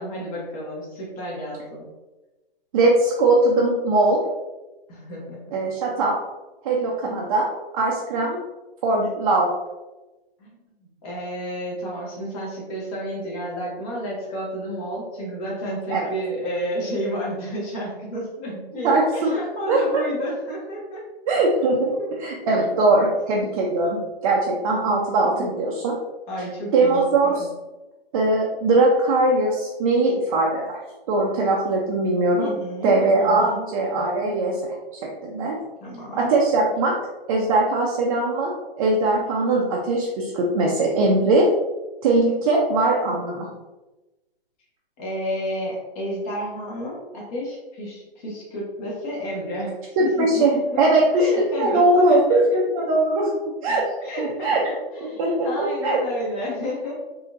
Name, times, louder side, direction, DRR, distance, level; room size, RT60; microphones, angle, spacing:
voice 1, 0.0-1.8 4.9-5.4 10.4-10.5 10.8-21.0 21.9-22.1 22.4-22.5 25.4-25.5 26.3-27.0 27.2-27.5 32.4-33.7 35.8-36.4 45.0-50.8 51.2-52.4 52.8-52.9 54.0-56.9, equal, 35° left, -4 dB, 1.3 m, -31 dB
voice 2, 2.7-4.2 5.5-6.1 6.6-7.5 7.7-8.4 8.8-9.5 15.9-16.1 18.8-19.4 19.7-20.0 21.3-21.9 22.2-24.0 24.2-26.0 26.7-27.4 28.1-30.8 31.1-32.5 32.8-34.6 35.0-35.6 36.2-37.0 37.3-38.5 38.8-41.5 42.0-43.5 50.2-50.5 50.8-51.3 51.5-53.3 53.6-53.8 54.2-54.6 55.2-56.0, right 2 dB, 35° right, -3 dB, 0.6 m, -20 dB
4.1 x 2.8 x 2.5 m, 1.1 s
hypercardioid pair, 135°, 31 cm